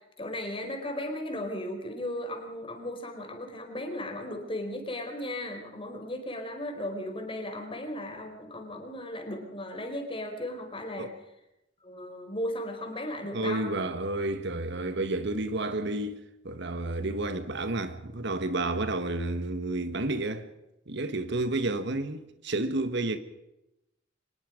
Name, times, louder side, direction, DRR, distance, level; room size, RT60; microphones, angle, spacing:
voice 1, 0.2-11.1 11.8-13.7, left 1 dB, 30° left, 4.6 m, -36 dB
voice 2, 13.3-16.2 16.4-20.5 20.9-23.2, right 2 dB, 60° right, 1.6 m, -30 dB
24.5 x 20.5 x 5.2 m
head